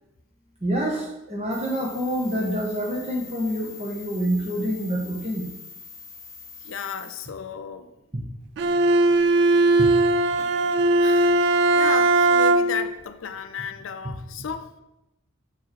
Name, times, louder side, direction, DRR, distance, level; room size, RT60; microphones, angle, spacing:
voice 1, 0.6-5.5 9.8-9.9, equal, 30° right, 1.3 m, -27 dB
sound 1, 1.5-7.3, left 6 dB, 15° left, 0.8 m, -43 dB
voice 2, 6.6-7.9 10.4-10.5 11.0-11.4 11.7-14.7, left 6 dB, 70° left, 0.4 m, -33 dB
Bowed string instrument, 8.6-12.9, right 2 dB, 55° right, 0.3 m, -19 dB
5.9 x 4.8 x 4.6 m
head